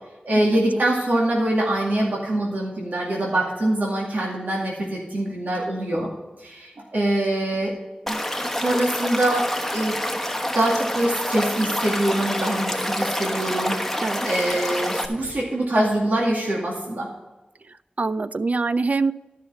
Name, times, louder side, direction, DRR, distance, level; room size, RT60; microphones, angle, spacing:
voice 1, 0.2-6.1 6.4-7.7 8.0-8.2 8.5-10.0 10.5-17.1, right 1 dB, 80° right, -3 dB, 2.2 m, -24 dB
Stream / Liquid, 8.1-15.1, left 1 dB, 5° left, 1.1 m, -27 dB
voice 2, 14.0-14.3 18.0-19.1, right 3 dB, 55° right, 14 dB, 0.4 m, -24 dB
12.5 x 5.7 x 5.5 m, 1.1 s
wide cardioid pair, 65°, 3 cm